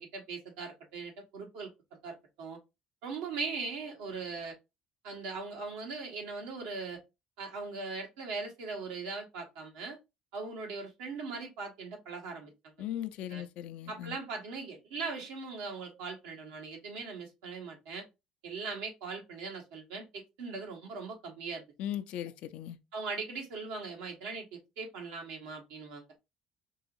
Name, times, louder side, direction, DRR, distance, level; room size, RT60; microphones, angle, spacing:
voice 1, 0.0-1.7 2.0-2.6 3.0-4.6 5.0-7.0 7.4-10.0 10.3-12.7 13.3-13.4 13.9-18.0 18.4-21.6 22.9-26.0, right 4 dB, 80° right, 1.2 m, -40 dB
voice 2, 12.8-14.2 21.8-22.8, left 11 dB, 70° left, 0.5 m, -38 dB
4.6 x 3.0 x 2.6 m
supercardioid pair, 75°, 2 cm